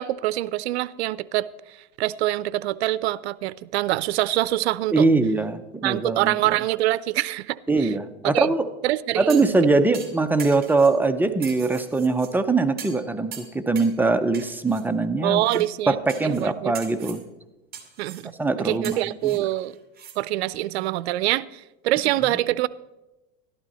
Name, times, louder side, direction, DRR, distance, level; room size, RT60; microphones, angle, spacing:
voice 1, 0.0-1.5 2.0-5.1 5.8-7.9 8.3-8.5 8.8-9.4 15.2-16.0 16.2-16.7 18.0-18.3 18.6-19.8 20.2-22.7, right 15 dB, 90° right, 0.5 m, -25 dB
voice 2, 4.9-6.6 7.7-8.7 9.2-17.2 18.4-19.5, right 3 dB, 5° right, 0.5 m, -22 dB
sound 1, 9.3-9.6 9.9-11.0 11.4-12.3 12.8-13.0 13.3-14.0 14.3-14.8 15.5-15.7 16.1-16.4 16.7-17.2 17.7-18.3 18.8-20.2 20.5-20.6, right 7 dB, 30° right, 1.8 m, -41 dB
12.0 x 12.0 x 4.1 m
supercardioid pair, 125°, 31 cm